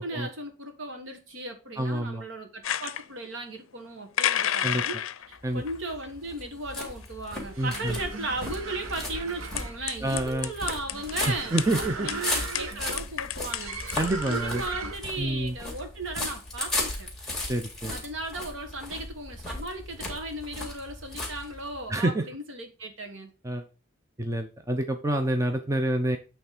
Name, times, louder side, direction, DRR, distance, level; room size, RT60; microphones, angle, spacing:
voice 1, 0.0-5.0 5.3-13.7 14.2-17.1 17.9-23.3, right 2 dB, 70° right, 1.6 m, -36 dB
voice 2, 1.8-2.2 4.6-4.8 5.4-5.6 7.6-8.0 10.0-10.5 11.3-12.1 14.0-14.6 15.2-15.6 17.5-17.9 21.9-22.2 23.4-23.6 24.2-26.2, right 1 dB, 15° right, 0.5 m, -27 dB
sound 1, 2.6-3.0 4.2-5.4 5.7-6.1 6.8-6.9 7.0-7.1 8.2-8.3 9.6-11.1 11.6-11.7 12.1-12.2 12.5-14.5, left 11 dB, 85° left, 0.5 m, -30 dB
sound 2, 5.4-21.9, left 2 dB, ahead, 2.1 m, -36 dB
sound 3, 7.5-15.2, right 4 dB, 90° right, 0.8 m, -38 dB
8.4 x 3.4 x 5.0 m
head